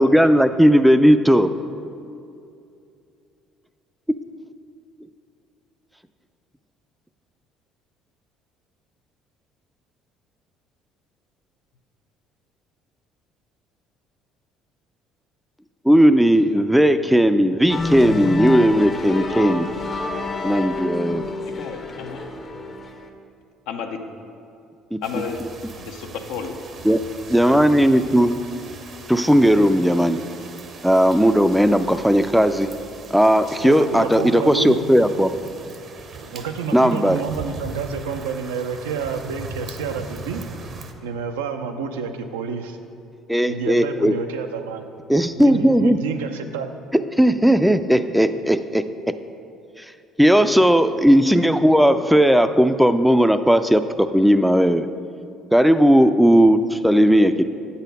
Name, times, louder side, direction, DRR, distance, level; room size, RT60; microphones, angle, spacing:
voice 1, 0.0-1.5 15.8-19.7 20.4-21.3 24.9-25.0 26.8-27.0 27.3-28.4 29.1-30.2 30.8-32.7 33.1-35.3 36.7-37.2 43.3-44.1 45.1-46.0 47.2-48.8 50.2-54.9 55.5-57.4, equal, ahead, 10 dB, 0.4 m, -16 dB
sound 1, 17.7-23.1, left 3 dB, 35° left, 0.7 m, -28 dB
voice 2, 21.4-22.2 23.7-24.0 25.0-25.4 25.8-26.5, left 6 dB, 75° left, 4 dB, 0.6 m, -31 dB
sound 2, 25.0-40.9, right 3 dB, 50° right, 0.7 m, -40 dB
voice 3, 33.6-34.9 36.3-40.4 41.0-42.8 43.5-44.9 45.4-46.7, right 6 dB, 90° right, 6 dB, 0.4 m, -29 dB
8.1 x 4.1 x 5.4 m, 2.6 s
hypercardioid pair, 65°, 0 cm